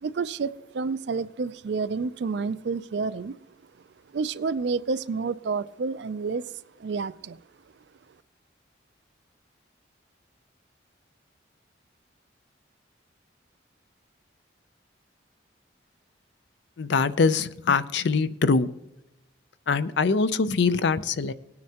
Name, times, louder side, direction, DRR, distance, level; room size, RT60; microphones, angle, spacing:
voice 1, 0.0-3.4 4.1-6.4 6.8-7.4, right 4 dB, 65° right, 15 dB, 0.4 m, -29 dB
voice 2, 16.8-18.7 19.7-21.3, left 4 dB, 65° left, 14 dB, 0.5 m, -23 dB
18.5 x 9.4 x 2.9 m, 0.91 s
head